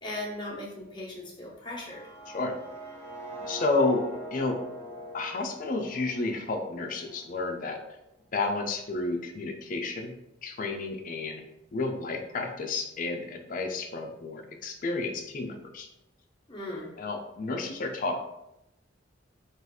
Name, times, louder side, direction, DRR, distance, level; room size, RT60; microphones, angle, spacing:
voice 1, 0.0-2.0 16.5-16.9, left 1 dB, 25° left, -4 dB, 0.7 m, -38 dB
sound 1, 1.7-7.7, equal, 60° right, 0.9 m, -43 dB
voice 2, 3.4-4.6 5.1-7.8 8.3-11.4 11.7-15.9 17.0-18.2, left 3 dB, 45° left, 4 dB, 0.4 m, -31 dB
2.5 x 2.3 x 3.4 m, 0.87 s
head